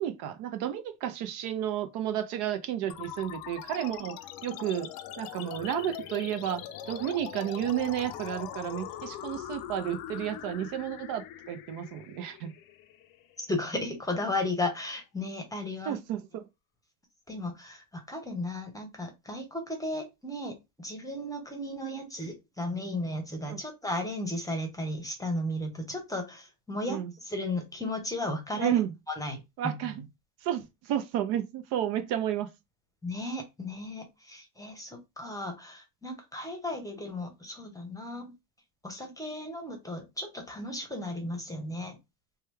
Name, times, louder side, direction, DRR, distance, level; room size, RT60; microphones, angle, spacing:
voice 1, 0.0-4.2 4.4-4.9 5.2-12.5 15.9-16.5 23.5-23.6 26.9-27.1 28.5-28.9 29.6-30.0 30.4-32.5, right 11 dB, 55° right, 0.6 m, -32 dB
sound 1, 2.9-13.8, left 11 dB, 45° left, 0.5 m, -42 dB
voice 2, 13.4-16.0 17.3-28.7 29.1-30.0 33.0-38.3 38.8-42.0, left 1 dB, 5° left, 0.9 m, -35 dB
3.0 x 2.2 x 3.3 m
hypercardioid pair, 100°, 48 cm